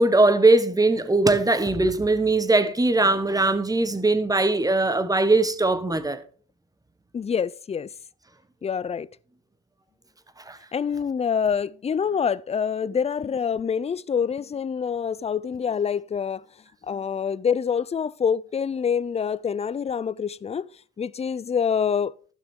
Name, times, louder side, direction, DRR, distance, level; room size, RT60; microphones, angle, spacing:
voice 1, 0.0-6.2 10.5-10.6, right 2 dB, 10° right, 1.1 m, -20 dB
voice 2, 7.1-7.9 8.6-9.1 10.7-16.4 16.8-20.7 21.0-22.1, left 7 dB, 20° left, 0.4 m, -26 dB
14.5 x 6.0 x 3.7 m
cardioid pair, 90°, 30 cm